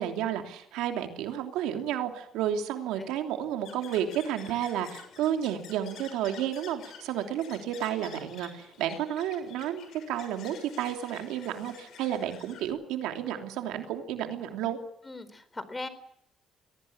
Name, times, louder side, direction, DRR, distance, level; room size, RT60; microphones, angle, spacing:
voice 1, 0.0-14.8, right 10 dB, 90° right, 5 dB, 3.1 m, -31 dB
sound 1, 3.6-12.7, left 7 dB, 75° left, 6.6 m, -50 dB
voice 2, 15.0-15.9, left 2 dB, 20° left, 13 dB, 4.1 m, -39 dB
22.5 x 18.0 x 8.9 m, 0.75 s
cardioid pair, 85°, 0 cm